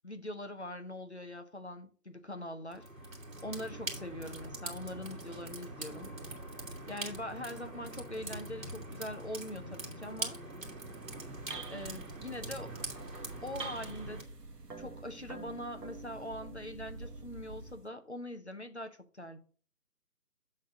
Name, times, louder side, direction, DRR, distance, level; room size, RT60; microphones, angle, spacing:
voice 1, 0.0-2.9 3.4-6.1 6.9-10.4 11.7-12.8 13.4-14.3 14.8-19.4, left 1 dB, 45° left, 0.7 m, -42 dB
sound 1, 2.7-14.2, right 2 dB, 55° right, 2.1 m, -43 dB
sound 2, 10.9-17.9, right 3 dB, 75° right, 1.2 m, -46 dB
7.6 x 3.9 x 5.9 m
figure-of-eight pair, 170°, 48 cm